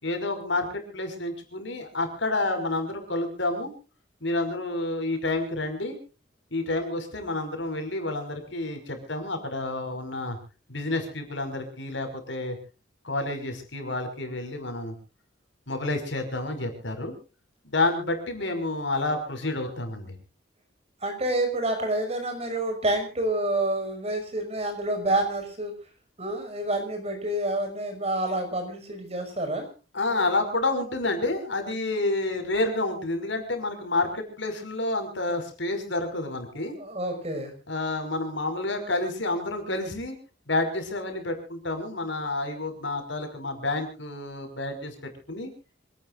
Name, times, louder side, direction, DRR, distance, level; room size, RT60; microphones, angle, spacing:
voice 1, 0.0-3.7 4.2-6.0 6.5-10.4 10.7-12.6 13.0-14.9 15.7-17.1 17.6-20.1 29.9-36.8 37.7-40.1 40.5-44.9 45.3-45.5, left 2 dB, 75° left, 7 dB, 5.6 m, -29 dB
voice 2, 21.0-25.7 26.2-29.7 36.7-37.5, right 1 dB, 35° right, 5 dB, 5.8 m, -28 dB
26.5 x 18.5 x 2.5 m, 0.35 s
head